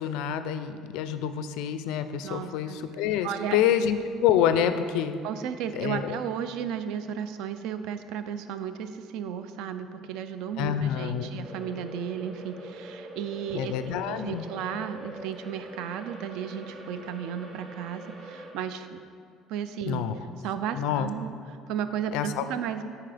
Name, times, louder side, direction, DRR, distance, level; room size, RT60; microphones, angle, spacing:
voice 1, 0.0-5.2 5.7-6.2 10.6-11.3 13.5-14.4 19.9-20.2 20.7-21.1 22.1-22.5, left 9 dB, 80° left, 11 dB, 0.4 m, -27 dB
voice 2, 2.2-2.8 3.2-3.6 5.2-19.0 19.5-20.1 20.4-21.3 21.7-22.8, right 8 dB, 65° right, 10 dB, 0.4 m, -34 dB
sound 1, 11.4-18.5, right 1 dB, 35° right, 0.8 m, -44 dB
9.4 x 4.6 x 3.4 m, 2.3 s
cardioid pair, 175°, 0 cm